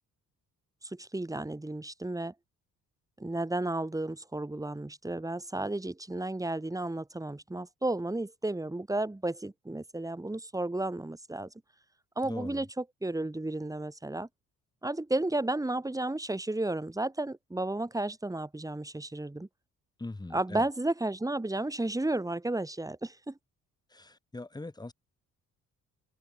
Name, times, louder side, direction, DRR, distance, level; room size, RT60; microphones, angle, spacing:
voice 1, 0.8-2.3 3.2-11.5 12.1-14.3 14.8-19.5 20.3-23.4, right 2 dB, 10° right, 3.3 m, -33 dB
voice 2, 12.2-12.7 20.0-20.7 23.9-24.9, left 2 dB, 15° left, 2.2 m, -41 dB
open air
cardioid pair, 90°, 30 cm